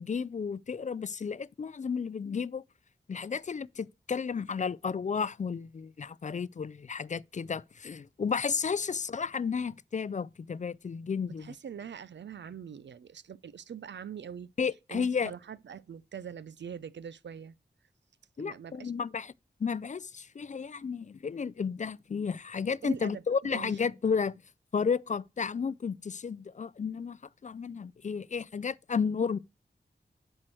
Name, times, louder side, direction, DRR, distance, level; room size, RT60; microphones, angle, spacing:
voice 1, 0.0-2.6 3.1-11.5 14.6-15.3 18.4-19.3 19.6-24.3 24.7-29.4, left 6 dB, 45° left, 0.4 m, -32 dB
voice 2, 11.4-14.5 14.9-17.6 18.4-18.9 22.8-23.2 23.5-23.7, right 8 dB, 80° right, 0.5 m, -43 dB
7.6 x 4.5 x 6.2 m
wide cardioid pair, 60°, 18 cm